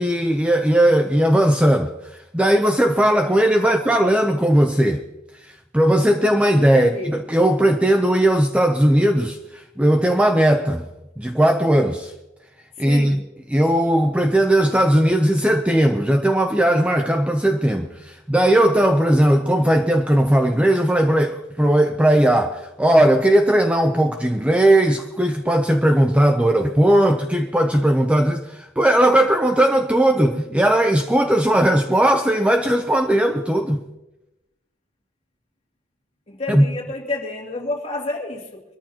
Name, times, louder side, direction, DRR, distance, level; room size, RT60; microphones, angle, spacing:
voice 1, 0.0-1.9 2.3-5.0 5.7-10.8 11.2-12.1 12.8-13.2 13.5-33.8 36.5-36.7, right 1 dB, 5° right, 0.6 m, -18 dB
voice 2, 3.6-4.0 6.7-7.1 12.8-13.2 30.5-30.7 36.3-38.6, left 2 dB, 30° left, 2.5 m, -30 dB
23.5 x 13.5 x 2.9 m
head